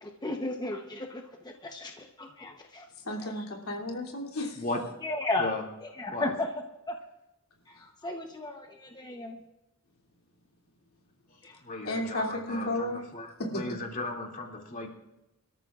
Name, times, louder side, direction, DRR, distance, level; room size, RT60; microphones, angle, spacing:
voice 1, 0.0-2.9 3.2-3.5 5.0-5.5 5.8-6.5 6.9-7.0 7.7-9.4 11.4-11.6, left 2 dB, 20° left, 2 dB, 0.9 m, -35 dB
voice 2, 3.0-4.6 11.8-13.0 13.4-13.6, left 1 dB, 85° left, 0 dB, 2.9 m, -33 dB
voice 3, 11.6-14.9, left 2 dB, 40° left, 0 dB, 2.5 m, -36 dB
26.0 x 13.5 x 2.5 m, 0.96 s
head